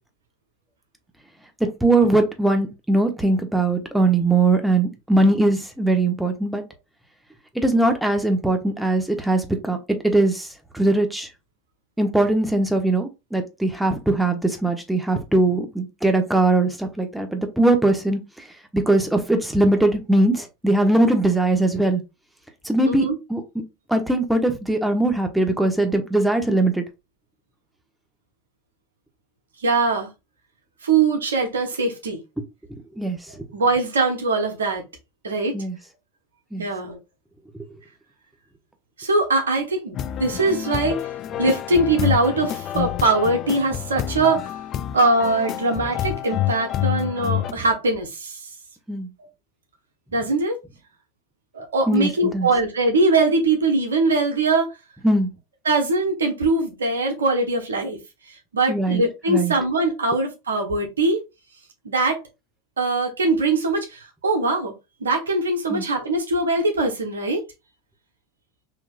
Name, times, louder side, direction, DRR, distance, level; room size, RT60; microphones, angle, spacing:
voice 1, 1.8-6.6 7.5-10.5 10.7-11.3 12.0-18.2 18.7-22.0 22.6-23.4 23.9-26.8 33.0-33.2 35.5-35.8 36.5-36.6 48.9-49.1 51.9-52.5 55.0-55.3 58.7-59.0 59.3-59.5 65.7-65.8, right 2 dB, 5° right, 1.1 m, -20 dB
voice 2, 22.8-23.2 29.6-30.1 30.8-32.2 33.5-34.8 35.2-35.6 36.6-37.0 39.0-41.1 41.4-44.5 44.9-48.5 50.1-50.6 51.5-54.8 55.6-58.0 58.3-61.2 61.8-62.2 62.8-64.7 65.0-67.4, right 3 dB, 85° right, 1.2 m, -22 dB
sound 1, 39.9-47.5, left 12 dB, 45° left, 0.4 m, -28 dB
5.9 x 2.9 x 2.4 m
hypercardioid pair, 80°, 0 cm